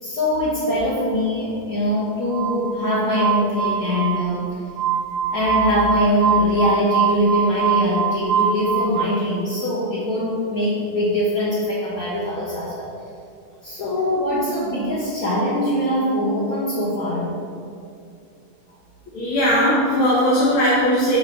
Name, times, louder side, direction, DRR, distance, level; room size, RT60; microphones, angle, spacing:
voice 1, 0.0-4.5 5.3-12.9 13.6-17.3, left 1 dB, 50° left, -10 dB, 2.0 m, -22 dB
Glass, 2.3-9.0, right 7 dB, 75° right, 1.2 m, -23 dB
voice 2, 19.1-21.2, equal, 90° left, -7 dB, 2.0 m, -18 dB
5.4 x 5.0 x 6.5 m, 2.6 s
omnidirectional pair, 2.2 m